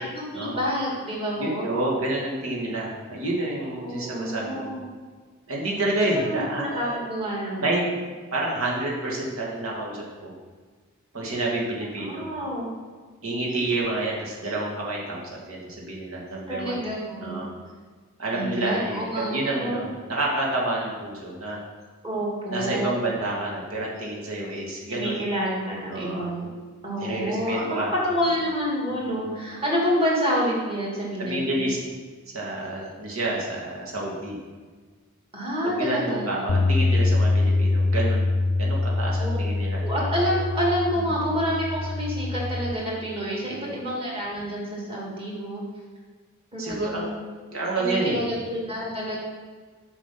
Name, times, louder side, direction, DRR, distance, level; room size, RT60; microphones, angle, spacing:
voice 1, 0.1-1.7 3.8-4.8 6.1-7.9 12.0-12.7 16.5-17.4 18.3-19.8 22.0-22.9 24.9-26.5 26.8-31.7 35.3-36.2 39.2-39.4 39.8-45.6 46.5-47.2 47.8-49.2, equal, 25° right, -4 dB, 2.6 m, -28 dB
voice 2, 1.4-4.7 5.5-7.1 7.6-7.9 8.3-10.3 11.1-12.3 13.2-16.8 17.2-17.5 18.2-21.6 22.5-25.2 25.9-26.3 27.0-27.9 28.9-29.3 31.2-31.8 32.3-34.4 35.6-38.3 38.6-39.8 41.0-41.3 43.4-43.7 46.6-47.1 47.5-48.2, right 2 dB, 80° right, -3 dB, 2.4 m, -29 dB
Bass guitar, 36.5-42.7, left 2 dB, 55° left, 0.4 m, -24 dB
7.5 x 6.1 x 6.0 m, 1.5 s
head